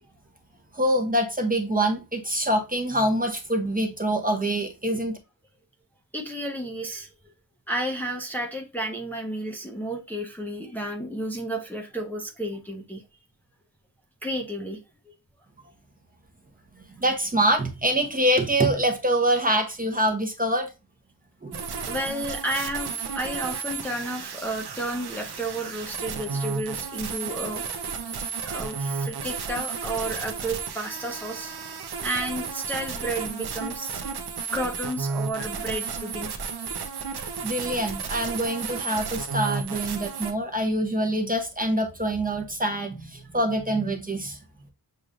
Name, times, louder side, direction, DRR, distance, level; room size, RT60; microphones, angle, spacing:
voice 1, 0.7-5.2 17.0-20.7 21.4-21.6 37.4-44.4, right 1 dB, 20° right, 0.8 m, -25 dB
voice 2, 6.1-7.1 7.7-13.0 14.2-14.8 21.9-27.6 28.4-31.5 32.0-34.0 34.5-36.3, right 1 dB, 5° left, 0.8 m, -32 dB
sound 1, 21.5-40.3, right 5 dB, 65° right, 0.8 m, -33 dB
6.7 x 3.1 x 2.5 m
wide cardioid pair, 125°, 42 cm